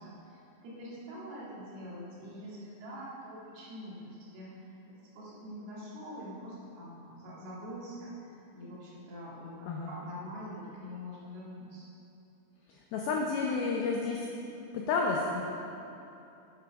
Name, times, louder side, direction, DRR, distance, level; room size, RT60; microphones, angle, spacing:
voice 1, 0.0-11.9, equal, 60° right, -7 dB, 3.6 m, -45 dB
voice 2, 12.7-14.3 14.7-15.5, left 4 dB, 90° left, -1 dB, 2.1 m, -31 dB
10.5 x 7.6 x 5.1 m, 2.8 s
omnidirectional pair, 5.3 m